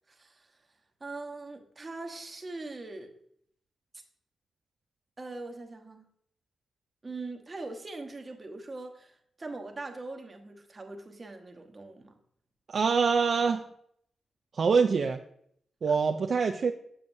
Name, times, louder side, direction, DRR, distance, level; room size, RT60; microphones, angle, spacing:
voice 1, 0.1-0.5 1.0-3.1 5.2-6.1 7.0-12.2, right 3 dB, 35° right, 3 dB, 1.1 m, -41 dB
voice 2, 12.7-13.7 14.5-15.2 15.8-16.7, right 5 dB, 60° right, 5 dB, 0.4 m, -25 dB
7.1 x 6.7 x 2.6 m, 0.68 s
cardioid pair, 55°, 0 cm